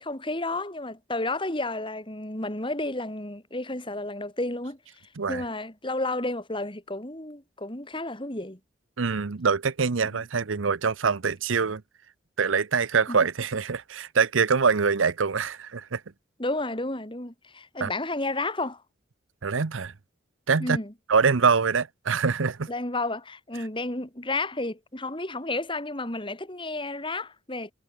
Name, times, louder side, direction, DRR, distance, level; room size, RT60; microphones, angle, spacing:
voice 1, 0.0-4.8 5.3-8.6 10.1-10.2 13.1-13.2 16.4-18.8 20.6-20.9 22.7-27.7, left 2 dB, 25° left, 2.8 m, -31 dB
voice 2, 9.0-11.8 12.4-16.0 17.8-17.9 19.4-19.9 20.5-20.8 21.1-22.7, right 5 dB, 85° right, 0.8 m, -24 dB
head